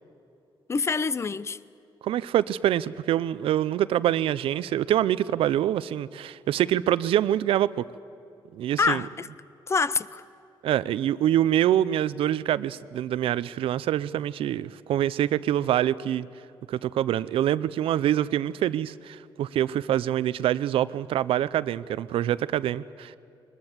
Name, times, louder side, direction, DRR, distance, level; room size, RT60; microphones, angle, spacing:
voice 1, 0.7-1.6 8.8-9.3 9.7-10.2, left 4 dB, 30° left, 17 dB, 0.6 m, -26 dB
voice 2, 2.0-7.8 8.5-9.1 10.6-16.3 16.7-23.2, right 11 dB, 90° right, 17 dB, 0.5 m, -25 dB
22.5 x 20.5 x 7.4 m, 2.7 s
cardioid pair, 120°, 9 cm